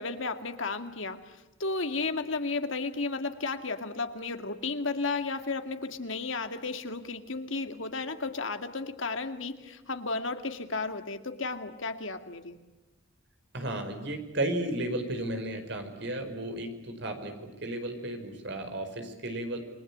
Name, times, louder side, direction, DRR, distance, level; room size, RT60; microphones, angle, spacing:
voice 1, 0.0-12.6, left 3 dB, 70° left, 7 dB, 2.2 m, -33 dB
voice 2, 13.5-19.6, right 1 dB, 60° right, 6 dB, 5.1 m, -34 dB
29.0 x 22.5 x 8.7 m, 1.1 s
head